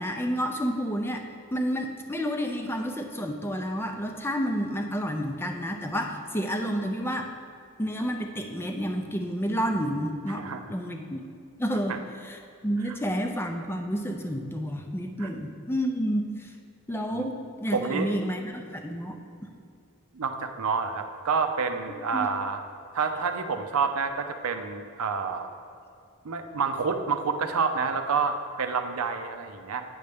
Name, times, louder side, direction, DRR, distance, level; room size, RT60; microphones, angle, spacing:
voice 1, 0.0-7.3 7.8-11.2 11.6-12.0 12.2-16.5 16.9-19.5 22.1-22.3, equal, 10° left, 4 dB, 0.4 m, -30 dB
voice 2, 10.3-10.6 11.9-12.0 12.9-13.0 15.2-15.3 17.1-17.3 17.7-18.2 20.1-22.6 22.9-25.5 26.2-29.8, right 5 dB, 85° right, 7 dB, 0.6 m, -28 dB
8.6 x 6.6 x 3.5 m, 2.5 s
head